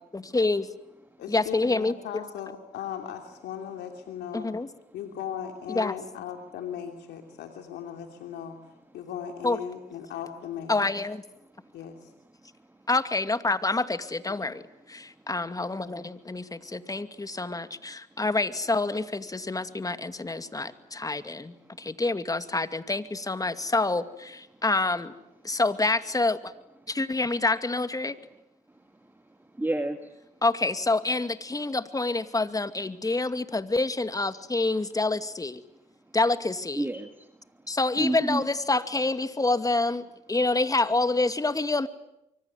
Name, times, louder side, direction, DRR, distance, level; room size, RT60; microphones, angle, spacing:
voice 1, 0.1-0.7 1.3-1.9 4.3-4.7 5.8-6.0 9.4-9.6 10.7-11.2 12.9-14.6 14.9-25.1 25.4-26.5 26.9-28.1 30.4-35.6 36.1-36.8 37.7-40.0 40.3-41.9, left 3 dB, 20° left, 11 dB, 2.4 m, -27 dB
voice 2, 1.2-4.5 4.9-8.6 8.9-10.9 11.7-12.1 14.4-14.5, left 9 dB, 75° left, 5 dB, 2.9 m, -38 dB
voice 3, 11.4-11.8 12.4-12.9 15.0-15.2 15.9-16.0 16.3-18.2 19.8-19.9 20.3-21.9 24.5-24.6 25.4-25.6 26.8-26.9 28.7-30.3 35.7-35.8 36.1-36.2 36.8-38.4, right 1 dB, 10° right, 8 dB, 2.2 m, -36 dB
25.0 x 24.5 x 9.8 m, 0.85 s
supercardioid pair, 60°, 18 cm